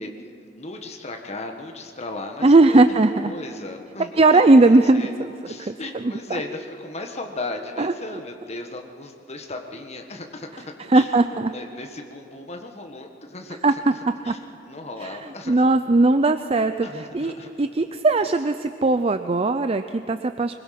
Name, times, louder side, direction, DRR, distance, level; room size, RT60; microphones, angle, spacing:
voice 1, 0.0-2.9 3.2-5.1 5.4-13.8 14.2-14.4 14.7-15.8 16.8-17.7, left 2 dB, 40° left, 3 dB, 1.6 m, -36 dB
voice 2, 2.4-3.3 4.2-5.3 5.6-5.7 7.8-7.9 10.9-11.5 13.6-13.9 14.3-14.4 15.0-15.1 15.5-17.3 17.6-20.5, right 2 dB, 35° right, 9 dB, 0.6 m, -18 dB
24.5 x 22.0 x 6.0 m, 2.8 s
head